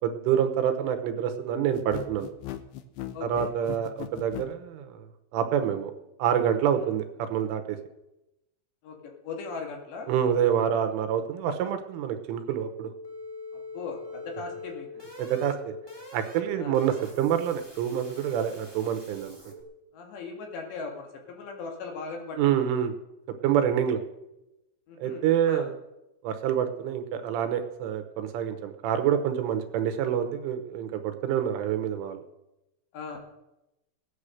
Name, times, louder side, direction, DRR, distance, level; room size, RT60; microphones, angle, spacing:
voice 1, 0.0-2.3 3.2-5.1 5.3-5.9 6.2-7.8 10.1-12.9 15.2-15.7 16.1-19.5 22.4-22.9 23.4-24.0 25.0-25.7 26.2-32.2, right 9 dB, 80° right, 8 dB, 3.4 m, -27 dB
sound 1, 1.7-4.5, left 13 dB, 80° left, 2.3 m, -37 dB
voice 2, 3.1-3.5 6.7-6.9 8.8-10.1 13.5-15.0 16.5-16.8 19.9-22.7 23.7-23.8 24.9-25.7 32.9-33.2, left 4 dB, 65° left, 2 dB, 3.8 m, -39 dB
sound 2, 12.5-19.6, left 2 dB, 15° left, 0.8 m, -44 dB
17.5 x 9.9 x 6.6 m, 0.93 s
omnidirectional pair, 5.9 m